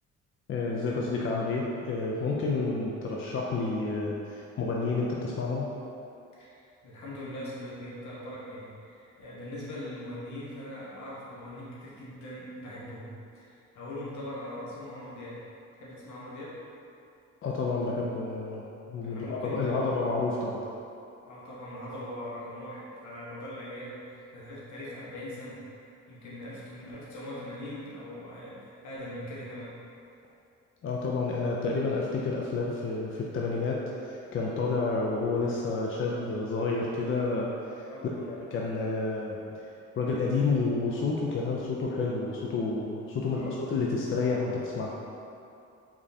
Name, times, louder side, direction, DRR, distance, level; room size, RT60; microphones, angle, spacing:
voice 1, 0.5-5.7 17.4-20.6 30.8-37.9 38.2-39.4 40.0-45.0, left 3 dB, 45° left, -3 dB, 0.4 m, -30 dB
voice 2, 6.4-15.4 15.7-16.5 19.0-19.9 21.2-29.7 37.9-38.1 43.3-43.6, left 1 dB, 70° left, -7 dB, 1.0 m, -41 dB
3.6 x 3.2 x 2.7 m, 2.6 s
cardioid pair, 90°, 30 cm